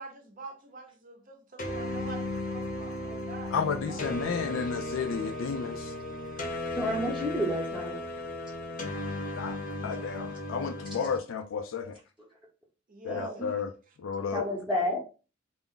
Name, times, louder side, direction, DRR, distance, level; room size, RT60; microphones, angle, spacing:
voice 1, 0.0-3.6 3.9-4.0 6.5-6.6 12.9-13.4, right 3 dB, 45° right, 0.6 m, -45 dB
sound 1, 1.6-11.2, left 2 dB, 45° left, 0.7 m, -35 dB
voice 2, 3.5-5.9 9.3-9.6 9.8-12.0 13.0-13.7 14.0-14.5, left 6 dB, 80° left, 0.3 m, -32 dB
voice 3, 6.7-8.0 13.1-13.5 14.3-15.0, left 1 dB, ahead, 0.7 m, -30 dB
2.3 x 2.1 x 3.7 m
head